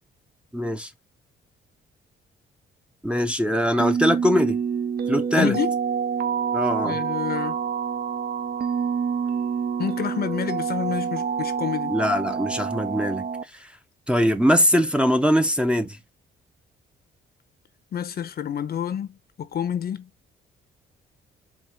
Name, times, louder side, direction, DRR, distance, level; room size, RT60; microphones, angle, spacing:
voice 1, 0.5-0.9 3.0-4.6 5.1-5.6 6.5-7.0 11.9-13.3 13.6-13.7 14.1-16.0, equal, 5° right, 0.6 m, -22 dB
sound 1, 3.8-13.4, right 7 dB, 50° right, 0.6 m, -27 dB
voice 2, 5.4-5.7 6.8-7.6 9.8-12.0 17.9-19.1 19.4-20.0, left 9 dB, 50° left, 0.7 m, -28 dB
4.6 x 2.4 x 3.4 m
cardioid pair, 90°, 20 cm